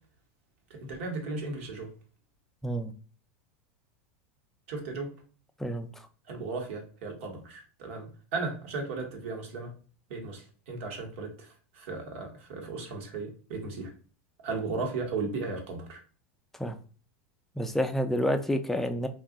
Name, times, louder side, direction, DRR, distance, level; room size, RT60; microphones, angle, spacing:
voice 1, 0.7-1.9 4.7-5.1 6.3-9.7 10.1-11.5 11.7-13.9 14.4-16.0, right 3 dB, 70° right, 3 dB, 1.1 m, -36 dB
voice 2, 17.6-19.1, equal, 5° left, 7 dB, 0.4 m, -28 dB
2.6 x 2.3 x 3.6 m, 0.39 s
supercardioid pair, 120°, 7 cm